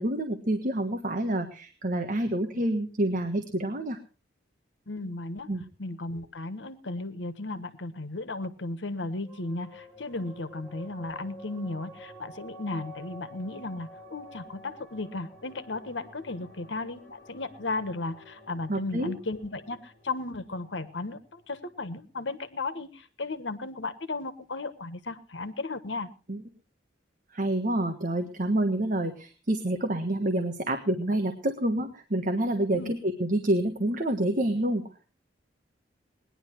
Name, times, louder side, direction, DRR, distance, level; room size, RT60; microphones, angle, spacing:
voice 1, 0.0-4.0 5.5-5.6 18.7-19.1 26.3-26.4 27.3-34.8, right 1 dB, 45° right, 5 dB, 1.4 m, -28 dB
voice 2, 4.9-5.5 5.8-26.1 32.7-32.9, left 2 dB, 90° left, 11 dB, 1.4 m, -35 dB
sound 1, 9.2-22.1, equal, 15° left, 5.2 m, -50 dB
19.5 x 11.0 x 4.5 m, 0.36 s
head